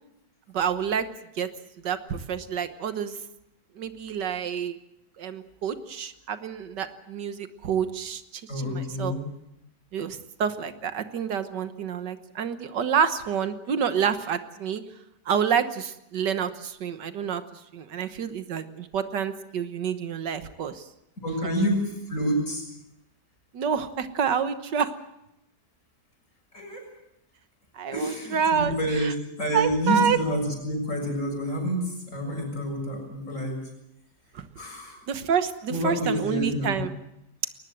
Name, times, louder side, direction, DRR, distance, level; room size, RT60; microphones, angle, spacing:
voice 1, 0.5-1.1 1.4-1.5 1.8-3.2 3.8-4.8 5.2-9.1 9.9-14.8 15.3-20.9 23.5-24.9 27.7-29.1 29.5-30.2 34.3-34.5 35.1-36.9, right 7 dB, 85° right, 10 dB, 1.8 m, -28 dB
voice 2, 8.5-9.2 21.2-22.6 26.5-26.8 27.9-33.6 34.6-35.0 35.7-36.9, equal, 45° left, 2 dB, 6.9 m, -28 dB
21.5 x 19.5 x 7.9 m, 0.86 s
omnidirectional pair, 1.8 m